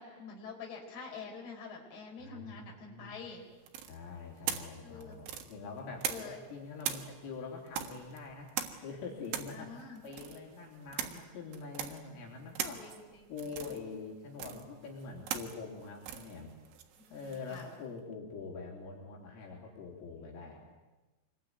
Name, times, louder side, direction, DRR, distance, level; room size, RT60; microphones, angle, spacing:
voice 1, 0.0-3.4 4.8-5.2 6.0-6.4 9.5-10.0 12.8-13.3 17.0-17.7, left 5 dB, 50° left, 0 dB, 6.4 m, -46 dB
voice 2, 2.2-3.1 3.9-8.5 8.8-12.8 13.3-16.5 17.1-20.7, left 4 dB, 75° left, -1 dB, 6.2 m, -45 dB
sound 1, 3.7-6.5 6.8-17.8, right 10 dB, 70° right, 3.7 m, -41 dB
26.0 x 22.5 x 9.5 m, 1.2 s
omnidirectional pair, 5.9 m